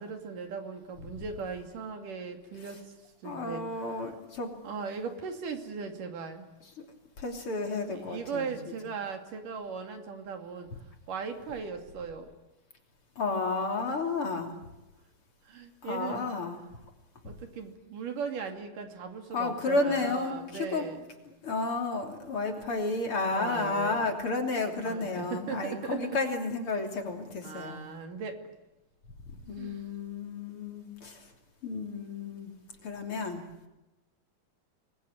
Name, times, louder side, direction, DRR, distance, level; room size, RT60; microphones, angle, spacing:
voice 1, 0.0-2.9 3.2-3.6 4.6-6.5 7.9-10.7 11.1-12.3 15.5-16.3 17.2-21.1 23.3-24.1 24.8-26.2 27.4-28.4 29.6-29.9, right 5 dB, 80° right, 5 dB, 4.1 m, -38 dB
voice 2, 3.2-4.5 6.8-6.9 7.2-8.5 13.2-14.5 15.8-16.6 17.2-17.3 19.3-20.9 21.3-27.8 29.5-31.3 31.6-32.5 32.8-33.4, left 3 dB, 40° left, 3 dB, 3.8 m, -32 dB
26.5 x 20.5 x 9.8 m, 1.0 s
omnidirectional pair, 3.8 m